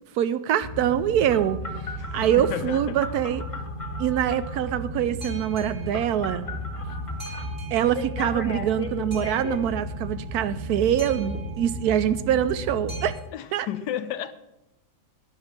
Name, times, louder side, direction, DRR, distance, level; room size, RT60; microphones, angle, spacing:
voice 1, 0.1-1.6 2.1-3.4 4.0-6.5 7.7-13.2 13.5-13.7, right 10 dB, 70° right, 14 dB, 1.0 m, -24 dB
Boat Water vehicle, 0.6-13.1, equal, 35° right, 2.1 m, -34 dB
Telephone, 1.3-4.6 5.9-7.4 7.9-9.6, left 2 dB, 25° left, 0.9 m, -37 dB
voice 2, 2.0-3.0 13.3-14.3, left 11 dB, 75° left, 11 dB, 1.1 m, -32 dB
10.5 x 5.7 x 8.6 m, 0.92 s
omnidirectional pair, 1.9 m